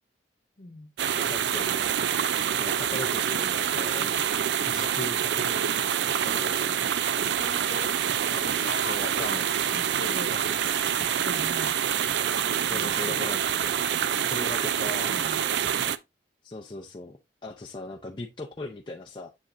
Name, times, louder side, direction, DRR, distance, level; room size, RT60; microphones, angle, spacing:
voice 1, 0.6-0.9 7.0-8.0 8.3-9.4 9.7-10.4 11.0-11.8 12.5-13.2 15.1-15.5, left 2 dB, 50° left, 1.1 m, -40 dB
sound 1, 1.0-16.0, right 9 dB, 65° right, 0.4 m, -26 dB
voice 2, 1.1-2.0 2.6-4.2 4.7-6.6 8.9-9.5 10.3-10.6 11.0-11.1 12.6-13.4 14.3-15.3 16.4-19.3, left 2 dB, 25° left, 0.6 m, -39 dB
7.1 x 5.2 x 2.6 m
head